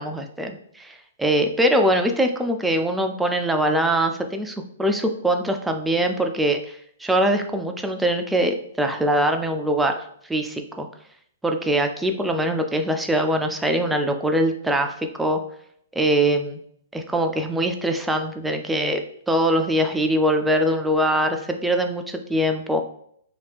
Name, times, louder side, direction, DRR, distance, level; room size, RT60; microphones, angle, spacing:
voice 1, 0.0-6.6 7.0-10.9 11.4-15.4 16.0-16.6 16.9-22.8, right 1 dB, 5° right, 5 dB, 0.4 m, -22 dB
2.8 x 2.3 x 3.4 m, 0.67 s
hypercardioid pair, 120°, 0 cm